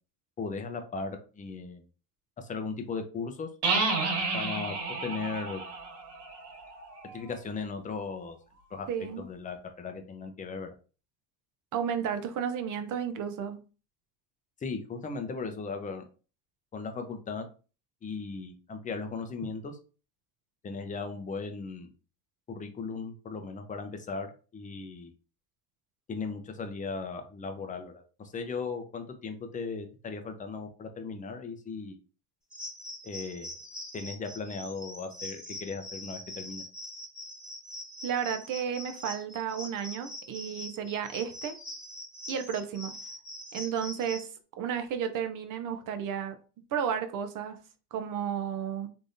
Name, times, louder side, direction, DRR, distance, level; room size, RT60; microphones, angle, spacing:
voice 1, 0.4-1.8 2.4-3.5 4.3-5.6 7.1-8.4 8.7-10.7 14.6-16.0 16.7-17.5 18.0-19.8 20.6-21.9 22.5-24.3 24.5-25.1 26.1-32.0 33.0-33.6 33.9-36.6, left 4 dB, 15° left, 0.5 m, -37 dB
sound 1, 3.6-7.3, right 3 dB, 60° right, 1.5 m, -31 dB
voice 2, 8.9-9.3 11.7-13.6 38.0-41.5 42.3-42.9 43.5-44.3 44.6-46.3 46.7-47.6 47.9-48.9, right 8 dB, 40° right, 0.7 m, -32 dB
sound 2, 32.5-44.3, left 1 dB, ahead, 1.7 m, -43 dB
3.3 x 2.6 x 2.6 m
supercardioid pair, 100°, 48 cm